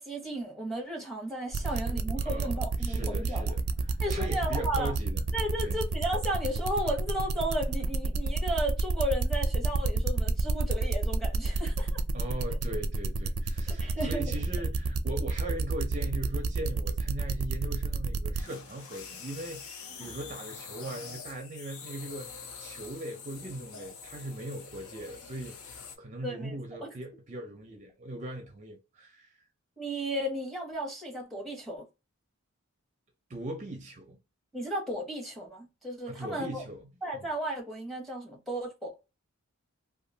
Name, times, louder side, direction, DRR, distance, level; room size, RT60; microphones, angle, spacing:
voice 1, 0.0-3.4 4.0-4.9 5.3-12.0 13.7-14.2 20.0-20.1 26.2-26.6 26.8-26.9 29.8-31.8 34.5-36.6 37.0-38.9, right 1 dB, ahead, 0.9 m, -34 dB
sound 1, 1.5-18.4, right 4 dB, 85° right, 0.4 m, -30 dB
voice 2, 2.2-5.2 5.6-5.8 12.1-22.3 22.6-29.4 33.3-34.2 36.1-37.2, right 1 dB, 35° right, 0.5 m, -40 dB
sound 2, 18.0-26.0, left 6 dB, 85° left, 0.6 m, -45 dB
2.9 x 2.4 x 2.6 m
head